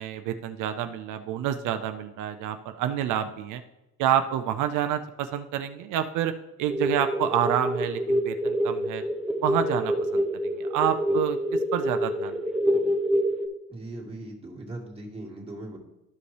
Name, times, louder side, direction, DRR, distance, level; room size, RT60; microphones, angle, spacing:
voice 1, 0.0-3.6 4.0-6.3 6.6-9.0 9.4-11.4 11.7-12.4, right 10 dB, 85° right, 8 dB, 0.5 m, -28 dB
sound 1, 6.7-13.5, equal, ahead, 0.9 m, -27 dB
voice 2, 13.7-15.8, right 1 dB, 20° right, -2 dB, 2.1 m, -39 dB
12.0 x 5.1 x 3.3 m, 0.97 s
cardioid pair, 90°, 30 cm